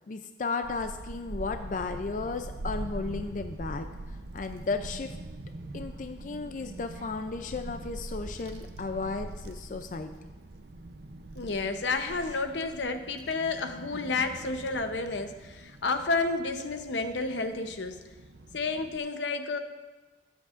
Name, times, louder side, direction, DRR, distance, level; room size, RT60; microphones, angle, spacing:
voice 1, 0.1-3.9 4.3-5.2 5.7-10.1, left 4 dB, 45° left, 7 dB, 0.4 m, -34 dB
Child speech kid speaking / Wind, 0.6-19.0, right 2 dB, 65° right, 0.7 m, -43 dB
voice 2, 11.3-18.0 18.5-19.6, left 3 dB, 85° left, 7 dB, 0.8 m, -31 dB
20.5 x 7.8 x 2.5 m, 1.2 s
head